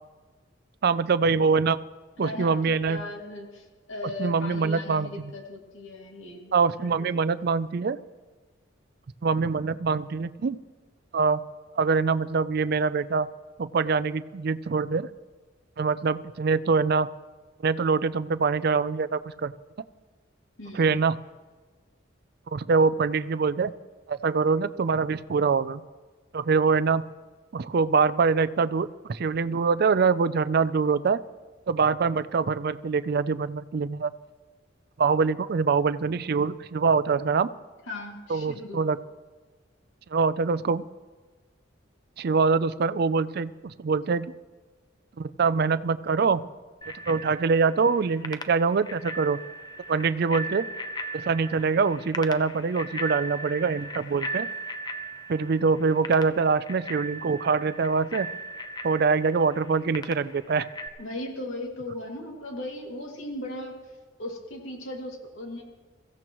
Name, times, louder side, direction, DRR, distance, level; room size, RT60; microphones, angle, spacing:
voice 1, 0.8-1.8 2.2-3.0 4.2-5.1 6.5-8.0 9.2-10.6 11.1-11.4 11.8-13.3 13.6-15.1 15.8-17.1 17.6-19.5 20.7-21.2 22.5-23.7 24.1-25.8 26.3-27.1 27.5-31.2 31.7-34.1 35.0-37.5 38.3-39.0 40.1-40.8 42.2-44.3 45.2-46.4 47.1-49.4 49.9-50.7 51.1-54.5 55.3-58.3 58.8-60.7, right 5 dB, 55° right, 14 dB, 0.4 m, -24 dB
voice 2, 2.2-7.1 20.6-21.0 37.9-38.8 61.0-63.9 64.2-65.6, left 1 dB, 90° left, 1 dB, 2.4 m, -37 dB
Bicycle bell, 46.8-60.9, right 1 dB, 20° left, 0.7 m, -38 dB
22.5 x 15.5 x 3.0 m, 1.3 s
head